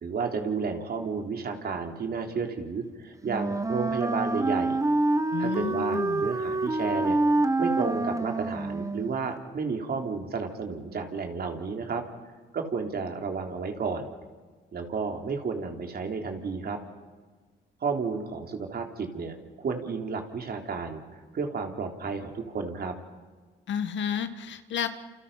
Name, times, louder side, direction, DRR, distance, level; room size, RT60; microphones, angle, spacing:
voice 1, 0.0-4.8 5.4-7.2 7.6-12.0 12.5-14.1 14.7-16.8 17.8-22.9, right 5 dB, 50° right, 3 dB, 3.8 m, -32 dB
Wind instrument woodwind instrument, 3.2-9.2, right 2 dB, 15° right, 1.4 m, -27 dB
voice 2, 5.3-6.3 23.7-24.9, left 8 dB, 70° left, 10 dB, 1.8 m, -31 dB
28.5 x 28.5 x 5.8 m, 1.4 s
cardioid pair, 90°, 20 cm